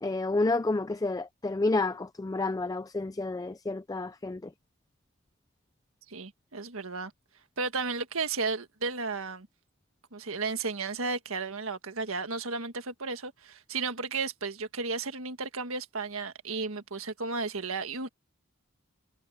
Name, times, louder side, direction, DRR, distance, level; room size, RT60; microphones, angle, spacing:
voice 1, 0.0-4.5, left 2 dB, 15° left, 0.3 m, -30 dB
voice 2, 6.1-7.1 7.6-9.5 10.1-18.1, right 4 dB, 70° right, 1.7 m, -33 dB
head